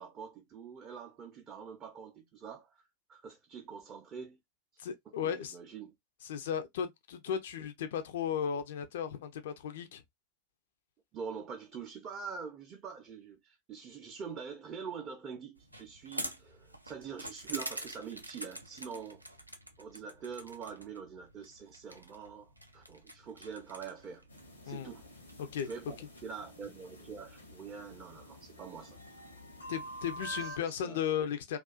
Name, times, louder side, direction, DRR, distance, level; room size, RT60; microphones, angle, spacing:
voice 1, 0.0-2.8 3.1-4.4 5.1-5.9 11.1-19.2 19.8-24.2 24.6-25.1 25.6-25.8 26.2-29.0 30.4-31.0, right 6 dB, 30° right, 0.5 m, -45 dB
voice 2, 4.8-5.5 6.2-10.0 24.7-24.9 25.4-25.7 29.7-31.6, left 8 dB, 60° left, 0.4 m, -35 dB
sound 1, 15.6-25.8, right 1 dB, 85° right, 0.4 m, -47 dB
sound 2, 24.3-30.6, right 1 dB, 80° left, 0.8 m, -47 dB
2.4 x 2.3 x 2.2 m
figure-of-eight pair, 90°, 0 cm